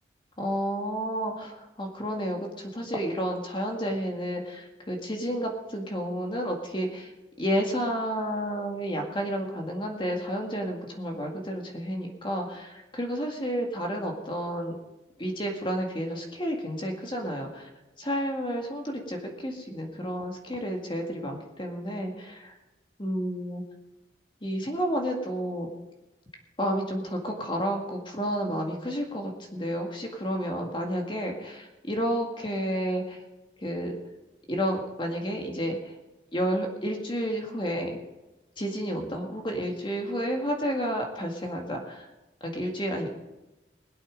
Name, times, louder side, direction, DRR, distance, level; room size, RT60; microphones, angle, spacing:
voice 1, 0.4-7.1 7.4-14.8 15.2-17.7 18.0-22.6 23.0-23.6 24.4-25.7 26.6-33.2 33.6-34.0 34.5-35.9 36.3-37.9 38.6-42.1 42.4-43.1, equal, 25° left, 2 dB, 1.9 m, -31 dB
21.0 x 8.5 x 5.2 m, 1.1 s
head